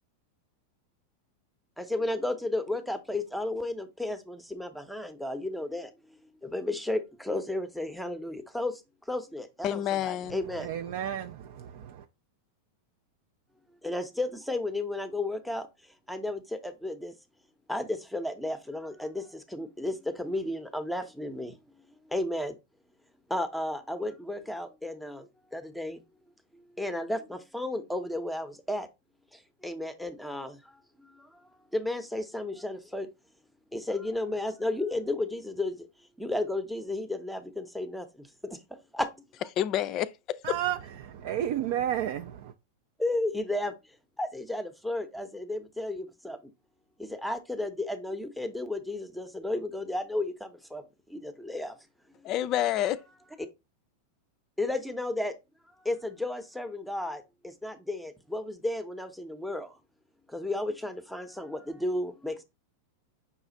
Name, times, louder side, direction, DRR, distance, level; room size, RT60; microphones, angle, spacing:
voice 1, 1.9-5.9 6.5-8.7 9.1-10.7 13.8-15.6 16.1-17.1 17.7-19.2 19.5-21.5 22.1-22.5 23.3-25.2 25.5-26.0 26.8-28.9 29.6-30.5 31.7-33.1 33.7-35.7 36.2-38.0 38.9-39.1 43.0-43.7 44.2-46.4 47.0-50.8 51.2-51.7 54.6-55.3 55.9-57.2 57.6-59.7 60.3-62.4, left 2 dB, ahead, 0.7 m, -33 dB
voice 2, 9.6-10.4 39.6-40.6 52.2-53.0, left 11 dB, 40° left, 0.3 m, -28 dB
voice 3, 10.3-12.1 40.4-42.5, right 11 dB, 55° right, 0.3 m, -32 dB
5.5 x 2.4 x 4.0 m
figure-of-eight pair, 90°, 0 cm